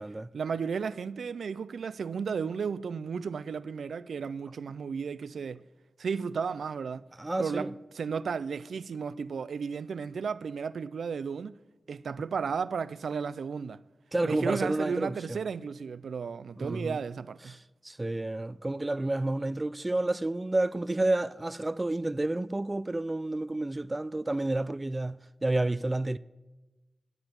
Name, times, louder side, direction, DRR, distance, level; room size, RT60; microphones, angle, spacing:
voice 1, 0.3-5.6 6.0-7.1 7.4-7.7 7.9-11.6 11.9-13.8 14.2-17.6, right 6 dB, 90° right, 0.4 m, -34 dB
voice 2, 7.2-7.7 14.1-15.4 16.6-17.0 17.5-17.6 17.8-26.2, right 2 dB, 25° right, 0.4 m, -30 dB
13.0 x 7.9 x 9.3 m
cardioid pair, 70°, 0 cm